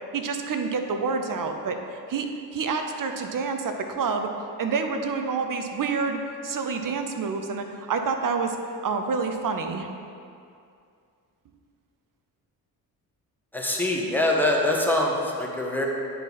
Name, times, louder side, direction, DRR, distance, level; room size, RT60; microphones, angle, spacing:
voice 1, 0.1-1.8 2.1-4.3 4.6-6.2 6.4-9.9, right 5 dB, 40° right, 5 dB, 0.8 m, -28 dB
voice 2, 13.5-15.9, left 1 dB, 5° left, -2 dB, 1.5 m, -24 dB
9.2 x 4.1 x 4.1 m, 2.4 s
hypercardioid pair, 40°, 50 cm